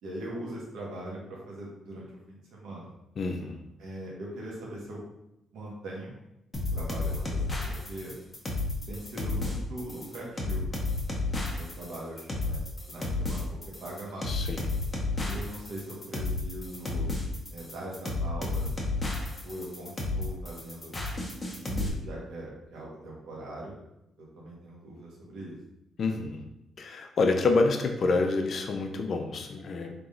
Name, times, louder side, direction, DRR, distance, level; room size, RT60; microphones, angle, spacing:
voice 1, 0.0-2.9 3.8-5.0 5.5-6.2 6.7-8.1 8.9-10.8 11.3-12.6 12.9-14.3 15.3-17.1 17.5-18.7 19.4-20.9 21.6-23.8 24.2-25.6, right 1 dB, 80° right, -4 dB, 1.4 m, -41 dB
voice 2, 3.2-3.6 14.2-14.7 26.0-26.4 26.8-29.9, left 3 dB, 55° left, 5 dB, 0.5 m, -27 dB
sound 1, 6.5-21.9, left 2 dB, 25° left, 1.0 m, -32 dB
3.5 x 2.9 x 3.8 m, 0.86 s
cardioid pair, 90°, 0 cm